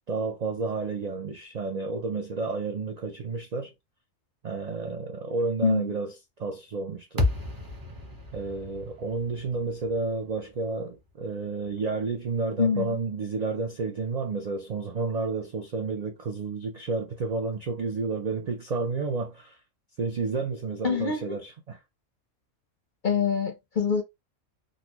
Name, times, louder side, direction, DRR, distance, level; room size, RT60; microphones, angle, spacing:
voice 1, 0.1-3.7 4.4-6.1 6.4-7.2 8.3-19.6 20.0-21.8, right 4 dB, 65° right, 0.4 m, -31 dB
voice 2, 5.6-5.9 12.6-13.0 20.8-21.4 23.0-24.0, left 6 dB, 50° left, 0.6 m, -25 dB
sound 1, 7.2-11.5, left 2 dB, 20° right, 0.7 m, -33 dB
3.9 x 2.1 x 2.9 m
omnidirectional pair, 1.3 m